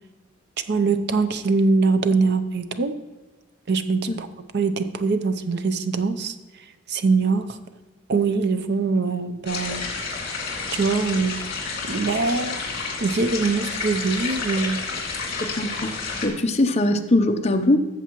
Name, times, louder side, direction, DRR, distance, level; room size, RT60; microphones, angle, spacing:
voice 1, 0.7-2.9 3.7-4.3 4.5-6.3 6.9-7.5 8.1-9.9 10.7-11.4 11.9-12.6 13.0-14.8, right 4 dB, 60° right, 10 dB, 0.6 m, -22 dB
sound 1, 9.4-16.3, left 4 dB, 55° left, 2.3 m, -30 dB
voice 2, 15.4-15.9 16.2-17.8, left 1 dB, 35° left, 5 dB, 0.7 m, -21 dB
14.0 x 7.2 x 3.0 m, 1.2 s
head